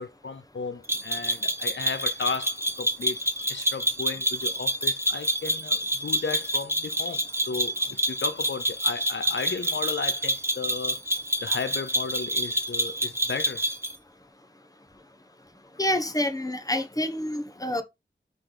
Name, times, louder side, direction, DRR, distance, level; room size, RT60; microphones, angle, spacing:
voice 1, 0.0-3.2 3.5-7.7 8.1-11.0 11.4-13.7, left 4 dB, 75° left, 0.7 m, -34 dB
sound 1, 0.9-13.9, equal, 15° right, 1.0 m, -27 dB
voice 2, 15.8-17.8, left 1 dB, 20° left, 1.2 m, -27 dB
5.8 x 4.1 x 4.9 m
wide cardioid pair, 70°, 19 cm